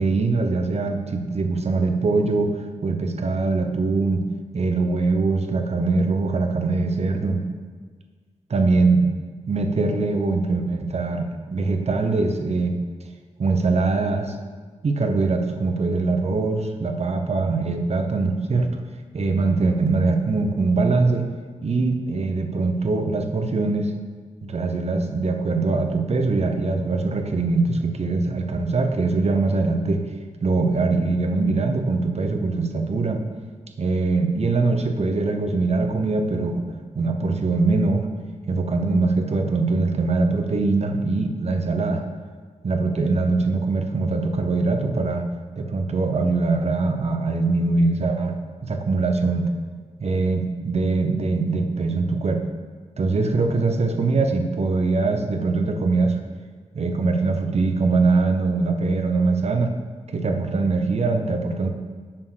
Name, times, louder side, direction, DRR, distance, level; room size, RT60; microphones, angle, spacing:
voice 1, 0.0-2.5 2.8-4.2 4.5-7.4 8.5-9.1 9.5-12.8 13.4-14.4 14.8-18.7 19.1-21.3 21.6-23.9 24.4-30.0 30.4-33.2 33.8-36.6 36.9-38.1 38.5-42.0 42.6-45.2 45.6-48.3 48.6-49.5 50.0-52.4 53.0-56.2 56.7-59.7 60.1-61.7, right 3 dB, 55° right, 5 dB, 0.8 m, -22 dB
7.4 x 4.5 x 6.2 m, 1.5 s
cardioid pair, 75°, 13 cm